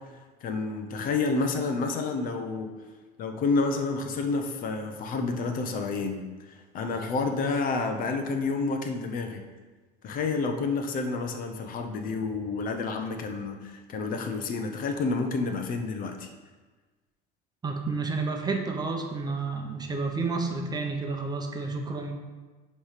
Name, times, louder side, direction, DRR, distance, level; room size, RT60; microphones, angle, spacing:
voice 1, 0.4-2.7 3.2-9.4 10.0-16.3, left 4 dB, 50° left, 5 dB, 0.9 m, -29 dB
voice 2, 17.6-22.1, right 3 dB, 20° right, 3 dB, 0.9 m, -30 dB
9.8 x 3.3 x 5.0 m, 1.3 s
supercardioid pair, 115°, 19 cm